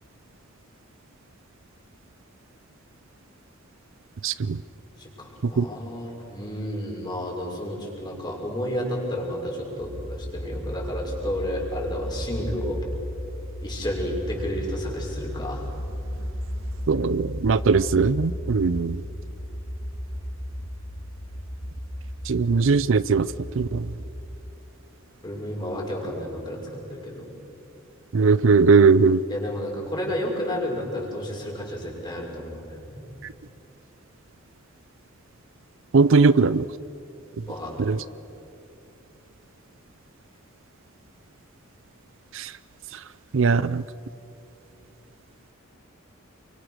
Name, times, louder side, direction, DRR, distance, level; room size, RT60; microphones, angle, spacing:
voice 1, 4.2-4.6 5.6-5.7 16.9-19.0 22.3-23.3 23.6-23.9 28.1-29.2 35.9-36.7 37.9-38.0 42.4-42.5 43.3-43.8, right 4 dB, 65° right, 17 dB, 0.5 m, -19 dB
voice 2, 5.0-12.8 13.6-15.7 25.2-27.3 29.3-33.0 37.5-37.9, equal, 20° left, -2 dB, 5.9 m, -31 dB
sound 1, 9.8-24.5, equal, 60° left, 2.4 m, -34 dB
29.0 x 24.0 x 6.6 m, 2.8 s
head